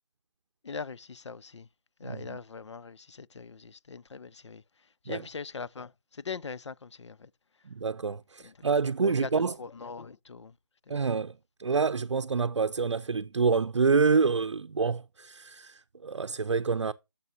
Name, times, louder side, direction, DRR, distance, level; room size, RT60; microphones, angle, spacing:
voice 1, 0.6-1.7 2.0-4.6 5.0-7.3 8.4-8.7 9.0-10.5 10.9-11.0, left 5 dB, 75° left, 0.5 m, -41 dB
voice 2, 2.0-2.4 5.1-5.2 7.7-9.6 10.9-11.3 11.6-16.9, right 5 dB, 85° right, 0.5 m, -27 dB
10.5 x 6.8 x 2.7 m
figure-of-eight pair, 175°, 15 cm